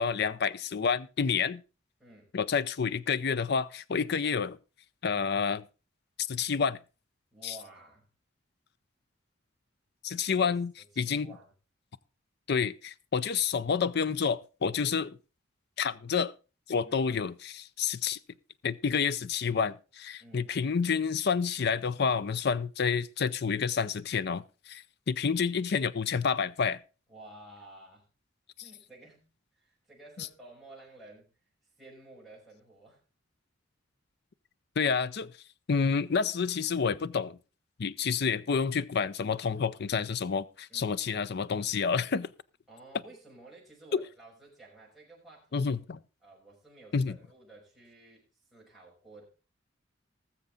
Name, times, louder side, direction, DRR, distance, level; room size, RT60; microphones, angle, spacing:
voice 1, 0.0-1.6 2.3-4.6 5.0-5.6 6.3-6.8 7.4-7.5 10.0-10.7 11.0-11.3 12.5-15.1 15.8-16.3 16.7-18.2 18.6-26.8 30.2-30.3 34.8-35.3 35.7-37.4 37.8-42.3 43.9-44.0 45.5-46.0 46.9-47.2, left 6 dB, 55° left, 0.5 m, -29 dB
voice 2, 2.0-2.4 7.3-8.1 10.1-10.6 10.9-11.5 14.7-14.9 16.8-17.0 20.2-20.6 27.1-28.0 28.6-29.2 29.5-31.3 31.8-33.0 40.7-41.0 42.7-45.7 46.2-49.2, right 2 dB, ahead, 5.6 m, -53 dB
19.5 x 7.1 x 3.8 m
head